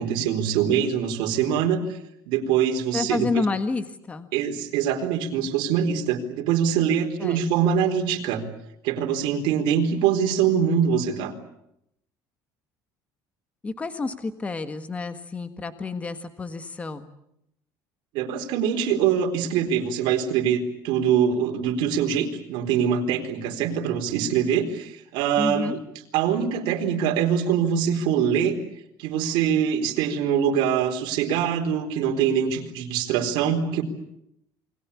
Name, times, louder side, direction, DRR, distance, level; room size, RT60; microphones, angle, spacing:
voice 1, 0.0-2.0 2.3-3.3 4.3-8.4 8.8-11.3 18.1-25.8 26.1-28.6 29.0-33.8, right 8 dB, 75° right, 3 dB, 4.1 m, -23 dB
voice 2, 2.9-4.3 7.2-7.7 13.6-17.1 25.4-25.8, left 3 dB, 15° left, 9 dB, 1.6 m, -29 dB
28.5 x 21.5 x 8.5 m, 0.79 s
cardioid pair, 165°, 8 cm